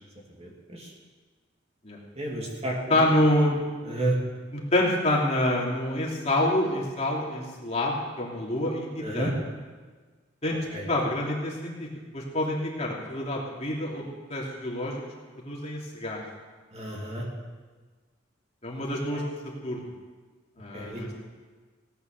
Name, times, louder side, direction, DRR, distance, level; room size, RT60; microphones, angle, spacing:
voice 1, 0.4-0.9 2.2-3.1 3.8-4.2 9.0-9.3 10.7-10.9 16.7-17.2 20.7-21.0, right 1 dB, 35° right, -2 dB, 2.7 m, -31 dB
voice 2, 2.9-3.6 4.5-9.3 10.4-10.6 10.9-11.9 12.1-15.0 15.3-16.2 18.6-19.2 19.6-19.8 20.6-21.2, left 1 dB, 35° left, -3 dB, 2.9 m, -27 dB
17.5 x 10.0 x 6.6 m, 1.4 s
head